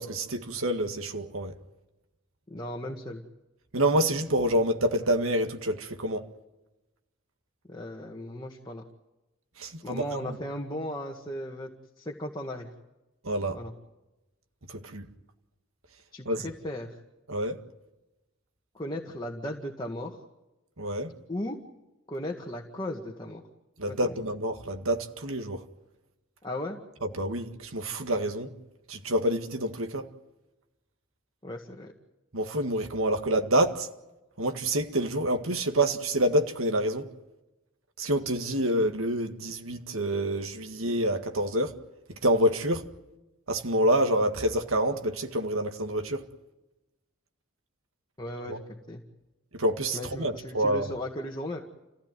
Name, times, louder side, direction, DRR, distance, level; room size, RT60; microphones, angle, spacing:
voice 1, 0.0-1.5 3.7-6.3 9.6-10.4 13.2-13.6 14.7-15.1 16.3-16.5 17.3-17.6 20.8-21.1 23.8-25.6 27.0-28.5 28.9-30.1 32.3-33.9 34.4-37.1 38.0-41.8 42.2-42.9 43.5-46.3 48.5-48.6 49.5-50.9, right 1 dB, 80° right, 1.9 m, -27 dB
voice 2, 2.5-3.2 7.7-8.8 9.8-11.7 12.0-12.7 13.5-13.7 16.1-16.9 18.7-20.2 21.3-21.6 22.1-23.4 23.9-24.1 26.4-26.8 31.4-31.9 48.2-49.0 49.9-51.6, left 1 dB, 20° left, 1.9 m, -36 dB
29.0 x 16.0 x 9.3 m
head